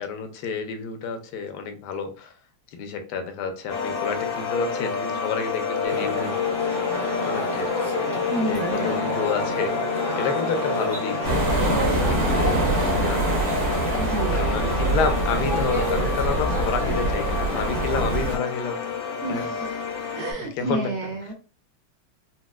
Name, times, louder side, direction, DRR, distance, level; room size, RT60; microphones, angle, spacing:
voice 1, 0.0-2.3 2.7-6.3 7.2-7.7 8.4-12.8 13.0-13.4 14.3-18.8 19.3-19.5 20.6-20.9, left 5 dB, 70° left, 6 dB, 1.1 m, -30 dB
sound 1, 3.7-20.3, left 6 dB, 90° left, 1.4 m, -29 dB
sound 2, 5.8-17.9, equal, 20° right, 0.8 m, -30 dB
voice 2, 8.2-8.9 14.0-15.0 19.2-21.3, right 2 dB, 70° right, 0 dB, 1.0 m, -31 dB
sound 3, 11.2-18.4, right 2 dB, 40° right, 1.4 m, -25 dB
4.1 x 2.2 x 2.2 m, 0.35 s
omnidirectional pair, 2.1 m